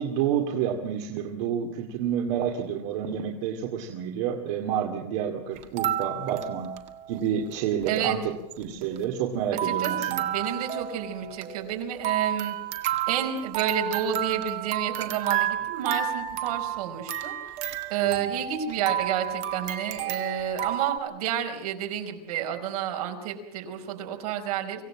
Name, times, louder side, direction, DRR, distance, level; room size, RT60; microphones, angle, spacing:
voice 1, 0.0-6.8 7.1-10.3 18.1-18.3, right 8 dB, 55° right, 2 dB, 2.4 m, -29 dB
sound 1, 5.6-7.2 7.5-7.6 7.8-8.0 8.5-9.3 9.6-21.0, right 10 dB, 35° right, 1.9 m, -31 dB
voice 2, 7.9-8.2 9.6-12.5 13.1-17.3 17.9-24.8, right 9 dB, 70° right, 4 dB, 4.6 m, -30 dB
25.5 x 16.0 x 7.5 m, 0.90 s
supercardioid pair, 155°, 20 cm